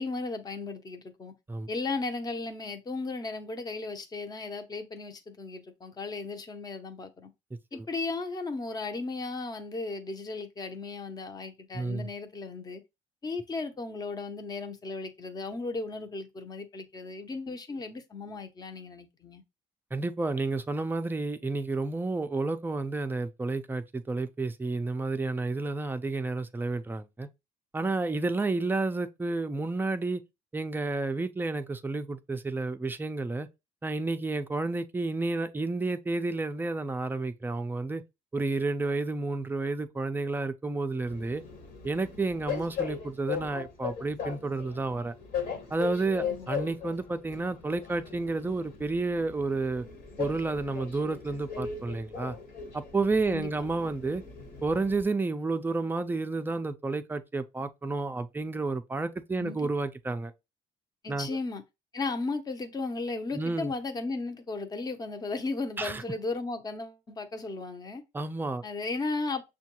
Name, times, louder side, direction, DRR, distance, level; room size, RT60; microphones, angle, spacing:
voice 1, 0.0-1.3 1.7-7.3 7.7-12.8 13.2-19.4 46.2-46.5 53.3-53.7 59.4-59.6 61.0-61.6 61.9-68.0 68.6-69.5, left 3 dB, 25° left, 0.7 m, -35 dB
voice 2, 11.7-12.1 19.9-27.3 27.7-30.2 30.5-33.5 33.8-38.0 38.3-41.4 41.8-45.1 45.7-49.8 50.2-52.4 52.7-54.2 54.6-60.3 61.1-61.4 63.3-63.7 65.8-66.0 68.1-68.6, right 3 dB, 10° right, 0.4 m, -31 dB
Train, 41.1-55.0, left 6 dB, 60° left, 1.4 m, -39 dB
6.2 x 2.3 x 2.9 m
cardioid pair, 110°, 17 cm